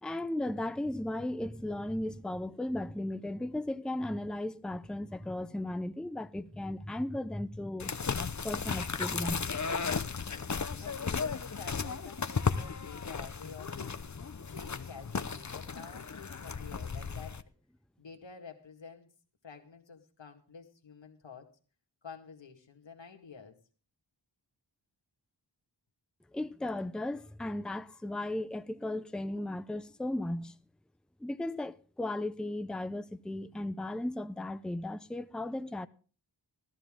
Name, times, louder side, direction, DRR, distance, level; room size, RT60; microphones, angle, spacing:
voice 1, 0.0-7.9 8.4-9.4 26.3-30.5 31.2-35.9, left 1 dB, ahead, 0.6 m, -36 dB
sound 1, 7.8-17.4, left 5 dB, 40° left, 0.8 m, -35 dB
voice 2, 10.8-14.0 14.5-17.4 18.0-19.1 19.4-21.5 22.0-23.6, left 5 dB, 90° left, 2.1 m, -49 dB
15.0 x 13.5 x 3.7 m
wide cardioid pair, 80°, 44 cm